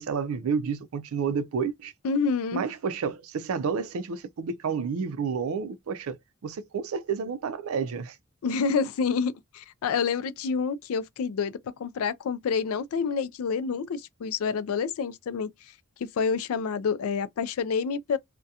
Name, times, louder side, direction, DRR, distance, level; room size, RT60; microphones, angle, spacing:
voice 1, 0.0-1.9 2.5-6.2 6.4-8.2, right 6 dB, 85° right, 0.4 m, -30 dB
voice 2, 2.0-2.6 8.4-11.5 11.8-15.5 16.0-18.2, left 5 dB, 90° left, 0.4 m, -28 dB
2.3 x 2.1 x 2.7 m
head